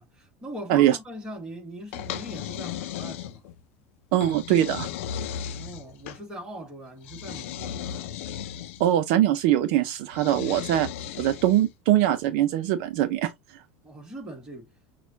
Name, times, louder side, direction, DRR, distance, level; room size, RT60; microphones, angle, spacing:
voice 1, 0.0-3.5 5.4-8.1 13.8-14.7, right 1 dB, 10° right, 1.6 m, -41 dB
sound 1, 1.9-3.6 4.2-6.2 7.0-8.9 10.1-11.7, left 9 dB, 90° left, 0.6 m, -36 dB
voice 2, 4.1-4.9 8.8-10.9 11.2-13.3, right 12 dB, 55° right, 0.6 m, -22 dB
6.3 x 2.4 x 2.8 m
cardioid pair, 170°, 7 cm